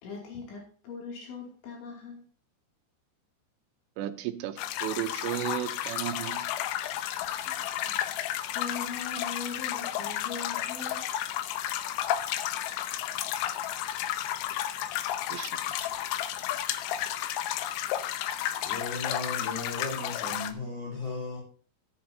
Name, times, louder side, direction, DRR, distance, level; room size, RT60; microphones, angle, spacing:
voice 1, 0.0-2.2 7.2-7.9 8.4-11.1, left 5 dB, 75° left, -1 dB, 4.8 m, -41 dB
voice 2, 4.0-6.4 6.8-6.9 15.3-15.9, right 13 dB, 80° right, 9 dB, 2.8 m, -34 dB
sound 1, 4.6-20.5, left 12 dB, 90° left, 3.2 m, -32 dB
voice 3, 18.6-21.4, left 3 dB, 35° left, -4 dB, 4.4 m, -36 dB
14.5 x 10.5 x 2.7 m, 0.40 s
omnidirectional pair, 5.4 m